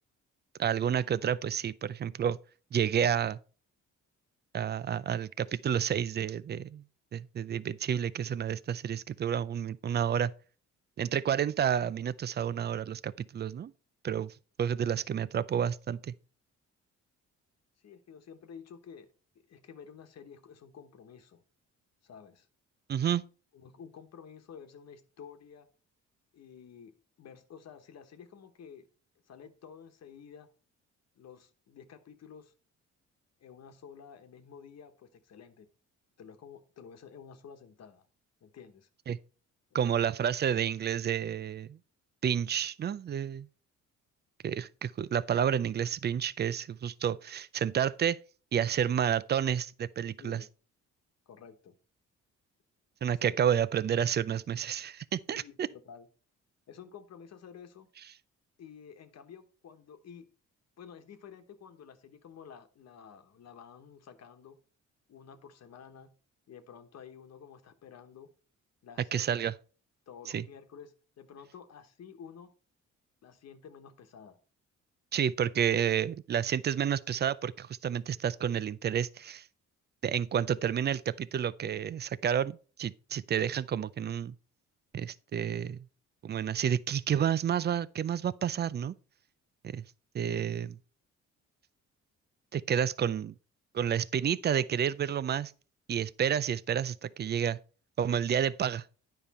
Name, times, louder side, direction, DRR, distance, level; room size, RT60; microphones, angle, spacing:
voice 1, 0.6-2.4 2.7-3.4 4.5-6.8 7.1-10.3 11.0-13.7 14.0-16.1 22.9-23.2 39.1-39.2 39.7-41.8 42.2-43.5 44.4-48.2 48.5-50.4 53.0-55.7 69.1-69.5 70.3-70.4 75.1-79.5 80.0-84.4 84.9-85.8 86.2-88.9 89.7-89.8 90.1-90.8 92.5-93.3 93.7-95.5 95.9-97.6 98.0-98.9, right 8 dB, 35° right, 0.4 m, -30 dB
voice 2, 17.8-19.1 19.3-21.4 22.0-22.5 23.5-25.7 26.3-28.9 29.3-30.5 31.2-32.5 33.4-35.7 36.2-38.0 38.4-38.9 39.7-39.9 50.2-50.5 51.3-51.8 53.1-53.5 55.3-56.1 56.7-57.9 58.6-60.3 60.8-64.6 65.1-66.1 66.5-68.3 68.8-69.2 70.1-72.5 73.2-74.4, left 7 dB, 60° left, 1.3 m, -51 dB
9.4 x 5.3 x 4.2 m
cardioid pair, 90°, 30 cm